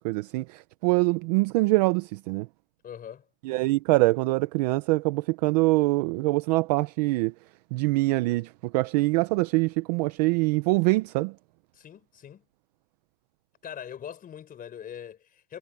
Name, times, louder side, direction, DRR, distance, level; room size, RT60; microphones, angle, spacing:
voice 1, 0.0-2.5 3.4-7.3 7.7-11.3, right 22 dB, 30° right, 0.4 m, -24 dB
voice 2, 2.8-3.3 11.7-12.5 13.6-15.6, left 9 dB, 20° left, 3.8 m, -42 dB
supercardioid pair, 155°, 42 cm